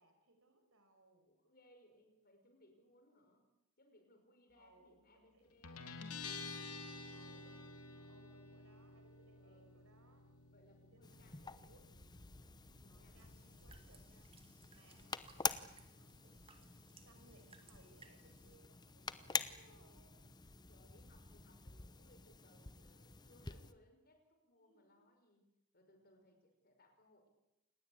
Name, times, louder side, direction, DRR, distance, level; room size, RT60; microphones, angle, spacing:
voice 1, 0.0-1.3 4.6-5.6 7.1-7.7 8.0-10.4 10.9-12.0 12.8-14.4 14.7-16.7 17.0-20.3 24.6-25.1, right 2 dB, 60° right, 6 dB, 5.3 m, -69 dB
voice 2, 1.2-3.5 3.8-6.1 9.3-9.8 10.5-11.9 12.8-13.3 15.0-15.3 20.7-25.4 25.7-27.3, left 1 dB, 45° left, 5 dB, 5.3 m, -68 dB
Guitar, 5.6-22.8, left 4 dB, 80° left, 3.1 m, -55 dB
sound 1, 11.0-23.7, left 5 dB, 20° left, 0.9 m, -47 dB
sound 2, 13.2-18.6, right 4 dB, 25° right, 2.3 m, -66 dB
27.5 x 19.5 x 8.6 m, 0.92 s
head